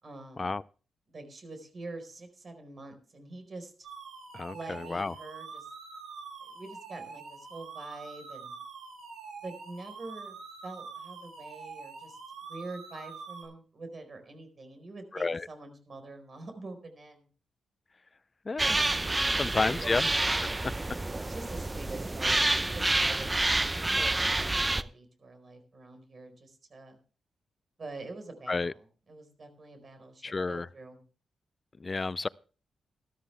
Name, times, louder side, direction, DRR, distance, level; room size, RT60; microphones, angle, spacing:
voice 1, 0.0-0.6 1.1-3.9 4.5-5.7 6.4-8.5 9.4-10.4 10.6-12.2 12.5-17.3 18.5-18.8 19.1-19.9 20.9-23.4 23.8-27.0 27.8-31.0, right 2 dB, 50° right, 4.4 m, -45 dB
sound 1, 3.8-13.5, right 5 dB, 90° right, 4.9 m, -45 dB
voice 2, 4.3-5.1 15.1-15.5 18.4-18.8 19.4-20.1 20.6-20.7 28.5-28.7 30.2-30.7 31.8-32.3, left 3 dB, 35° left, 0.5 m, -31 dB
sound 2, 18.6-24.8, right 2 dB, 20° right, 0.7 m, -28 dB
13.0 x 13.0 x 3.4 m
supercardioid pair, 55°, 0 cm